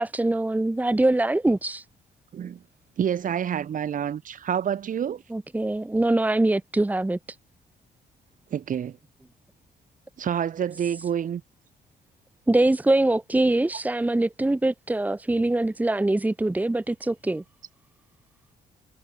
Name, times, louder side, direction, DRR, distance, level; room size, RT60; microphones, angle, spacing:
voice 1, 0.0-1.8 5.3-7.2 12.5-17.4, right 2 dB, 10° right, 1.8 m, -23 dB
voice 2, 2.3-2.6 3.0-5.2 8.5-9.0 10.2-11.4, right 8 dB, 50° right, 5.7 m, -28 dB
cardioid pair, 160°, 18 cm